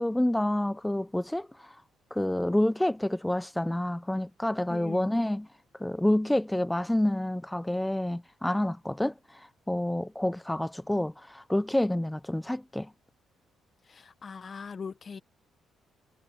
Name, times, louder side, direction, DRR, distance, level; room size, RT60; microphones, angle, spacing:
voice 1, 0.0-1.7 2.1-5.5 5.8-12.9, left 1 dB, 5° left, 0.8 m, -28 dB
voice 2, 4.7-5.1 13.9-15.2, left 5 dB, 40° left, 1.0 m, -40 dB
cardioid pair, 90°, 0 cm